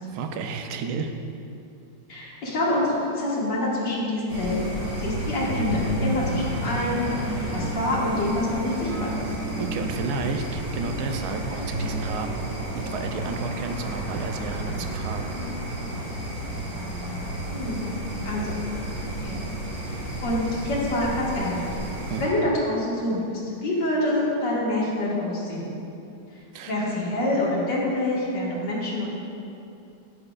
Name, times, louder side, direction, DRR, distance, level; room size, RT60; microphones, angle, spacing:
voice 1, 0.1-1.1 9.6-12.5 12.7-15.4 22.1-22.2 26.5-26.7, right 4 dB, 70° right, 6 dB, 0.9 m, -32 dB
voice 2, 2.1-9.2 17.5-18.0 18.2-18.6 19.2-19.5 19.9-21.6 22.2-25.7 26.7-29.1, left 1 dB, 60° left, -6 dB, 2.3 m, -26 dB
sound 1, 4.3-22.3, right 1 dB, 50° right, 2.2 m, -31 dB
11.0 x 8.6 x 2.4 m, 2.6 s
omnidirectional pair, 2.2 m